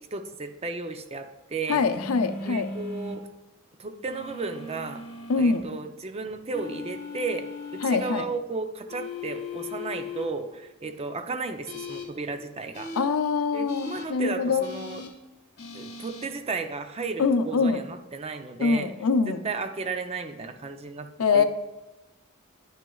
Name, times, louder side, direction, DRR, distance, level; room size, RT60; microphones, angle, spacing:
voice 1, 0.0-1.8 2.5-3.3 3.8-5.0 5.4-7.5 7.7-12.9 13.5-15.0 15.7-18.9 19.3-21.1 21.3-21.4, right 4 dB, 30° right, 7 dB, 0.5 m, -34 dB
voice 2, 1.7-2.7 5.3-5.6 7.8-8.3 13.0-14.6 17.2-17.8 18.6-19.4 21.2-21.4, left 4 dB, 85° left, 10 dB, 0.5 m, -24 dB
sound 1, 1.9-3.1 4.1-5.6 6.5-8.1 8.9-10.2 11.6-12.0 12.7-13.0 13.7-14.0 14.6-15.1 15.6-16.3, left 4 dB, 50° left, 1.4 m, -38 dB
10.5 x 6.0 x 2.3 m, 1.1 s
head